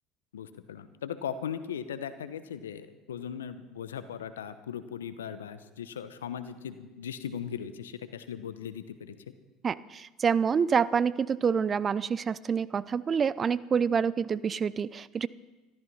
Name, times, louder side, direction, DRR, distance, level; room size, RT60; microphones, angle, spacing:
voice 1, 0.3-9.3, left 8 dB, 90° left, 12 dB, 0.9 m, -38 dB
voice 2, 9.6-15.3, right 6 dB, 35° right, 19 dB, 0.5 m, -27 dB
14.0 x 13.0 x 5.5 m, 1.1 s
hypercardioid pair, 75°, 0 cm